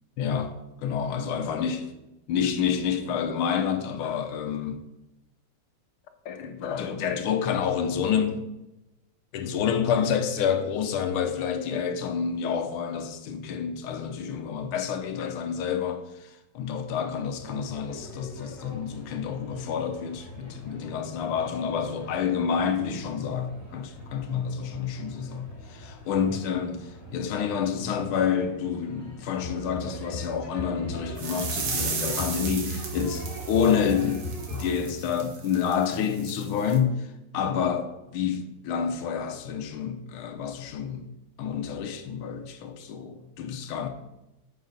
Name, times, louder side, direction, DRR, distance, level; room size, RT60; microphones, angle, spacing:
voice 1, 0.2-0.5 0.8-1.9 2.3-4.8 6.2-8.4 9.3-36.9 37.3-41.1 41.4-43.9, left 7 dB, 90° left, 1.7 m, -28 dB
sound 1, 17.4-34.9, equal, 20° left, 3.3 m, -40 dB
sound 2, 31.2-36.8, right 5 dB, 60° right, 1.7 m, -35 dB
9.2 x 6.1 x 3.9 m
omnidirectional pair, 2.3 m